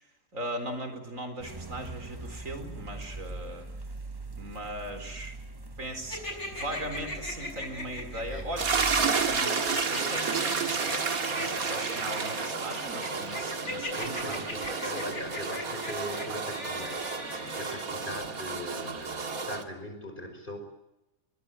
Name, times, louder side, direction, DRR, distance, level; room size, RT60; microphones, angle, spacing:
voice 1, 0.3-3.7 4.4-5.4 5.8-6.2 6.5-15.1, right 1 dB, 70° right, 8 dB, 4.6 m, -39 dB
sound 1, 1.4-9.4, right 2 dB, 20° right, 0.9 m, -42 dB
sound 2, 6.1-8.4 9.4-17.9, left 1 dB, 55° left, 6.5 m, -39 dB
sound 3, 8.6-19.6, right 5 dB, 90° right, 2.4 m, -31 dB
voice 2, 13.9-16.9 17.5-20.6, left 1 dB, 35° left, 7 dB, 5.2 m, -40 dB
23.0 x 21.0 x 9.1 m, 0.94 s
omnidirectional pair, 1.4 m